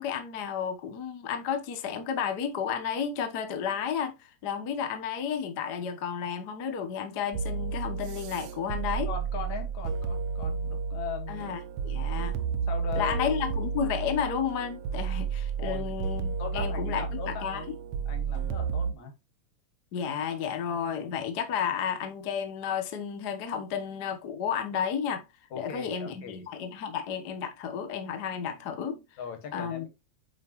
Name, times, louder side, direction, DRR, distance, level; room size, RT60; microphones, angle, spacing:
voice 1, 0.0-9.1 11.3-12.4 13.0-17.6 19.9-25.3 25.5-29.0 29.5-29.9, left 7 dB, 55° left, 1.1 m, -32 dB
sound 1, 7.3-18.9, right 6 dB, 85° right, 1.1 m, -32 dB
voice 2, 9.1-11.5 12.7-13.5 15.6-16.0 16.4-17.7 18.1-19.1 25.5-26.5 29.2-29.9, left 7 dB, 75° left, 3.0 m, -39 dB
8.6 x 5.2 x 3.0 m
omnidirectional pair, 3.3 m